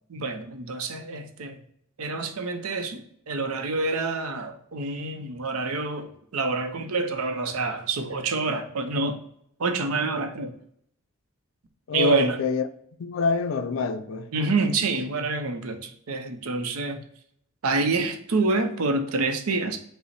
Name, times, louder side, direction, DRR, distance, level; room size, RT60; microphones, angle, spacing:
voice 1, 0.1-1.6 2.0-3.0 3.3-9.2 9.6-10.5 11.9-12.4 14.3-17.0 17.6-19.8, right 3 dB, 85° right, 0.6 m, -27 dB
voice 2, 11.9-12.7 13.0-14.3, left 4 dB, 70° left, 0.4 m, -26 dB
5.4 x 2.1 x 4.1 m
head